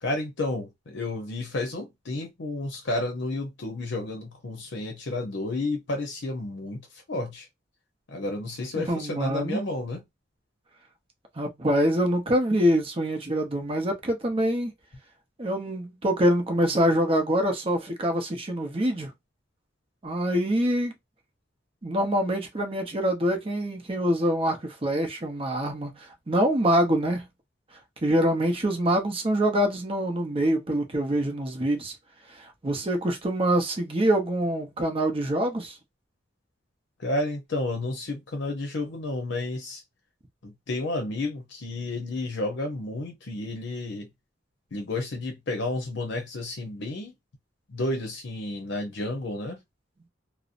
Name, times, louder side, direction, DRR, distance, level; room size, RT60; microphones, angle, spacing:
voice 1, 0.0-6.8 7.1-7.5 8.1-10.0 37.0-39.8 40.4-44.1 44.7-47.1 47.7-49.6, left 2 dB, 65° left, 0.6 m, -31 dB
voice 2, 8.8-9.6 11.4-14.7 15.4-19.1 20.0-20.9 21.8-27.2 28.0-31.9 32.3-35.8, equal, 30° right, 0.7 m, -25 dB
2.6 x 2.0 x 2.4 m
head